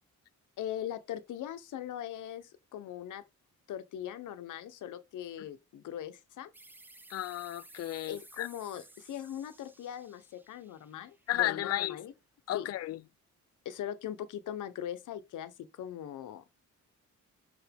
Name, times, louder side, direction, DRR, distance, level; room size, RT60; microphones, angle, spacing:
voice 1, 0.6-3.2 3.7-6.5 8.1-12.1 12.5-12.7 13.6-16.4, left 10 dB, 80° left, 1.0 m, -40 dB
sound 1, 6.5-11.8, right 2 dB, 5° right, 0.3 m, -56 dB
voice 2, 7.1-8.5 11.3-12.0 12.5-13.0, left 14 dB, 55° left, 0.4 m, -33 dB
6.0 x 5.3 x 3.5 m
wide cardioid pair, 170°, 30 cm